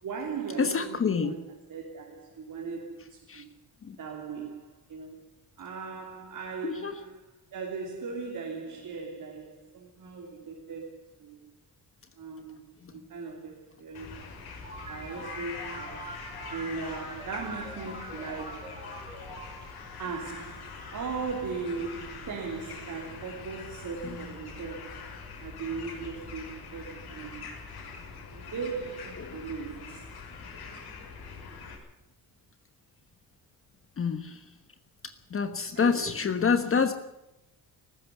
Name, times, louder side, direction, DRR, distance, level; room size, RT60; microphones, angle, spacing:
voice 1, 0.0-1.4 1.7-3.5 4.0-5.2 5.6-7.3 7.5-11.4 12.2-12.6 12.9-14.3 14.9-18.9 20.0-27.5 28.3-30.1 35.7-36.1, right 4 dB, 60° right, 3.4 m, -38 dB
voice 2, 0.6-1.3 3.3-3.4 3.8-4.0 6.6-7.0 12.8-12.9 24.0-24.2 29.2-29.4 34.0-34.5 35.0-36.9, left 5 dB, 35° left, 1.3 m, -28 dB
sound 1, 13.9-31.7, left 5 dB, 85° left, 6.1 m, -44 dB
sound 2, 14.6-20.9, right 1 dB, 15° right, 5.9 m, -44 dB
19.0 x 15.5 x 9.4 m
wide cardioid pair, 160°, 37 cm